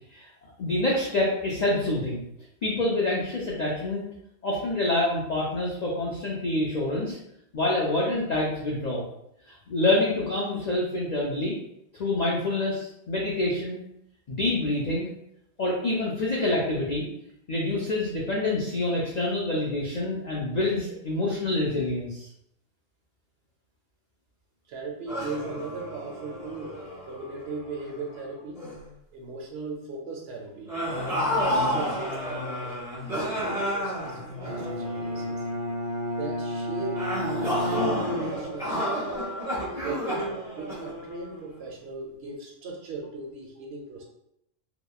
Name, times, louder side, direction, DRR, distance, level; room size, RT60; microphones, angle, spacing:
voice 1, 0.6-2.2 2.6-4.0 4.4-7.2 7.5-9.0 9.5-11.5 11.9-13.8 14.3-15.1 15.6-17.0 17.5-22.3 39.8-39.9, left 2 dB, 80° left, -4 dB, 0.3 m, -27 dB
voice 2, 24.7-26.8 27.0-28.7 29.1-35.5 36.2-37.0 37.6-39.2 39.7-44.0, right 3 dB, 65° right, -1 dB, 0.8 m, -38 dB
sound 1, 25.1-28.2 28.6-28.9 30.7-35.3 36.9-41.5, equal, 5° right, 0.7 m, -31 dB
Bowed string instrument, 34.4-38.6, left 1 dB, 40° right, 0.4 m, -32 dB
2.8 x 2.1 x 2.2 m, 0.77 s
omnidirectional pair, 1.3 m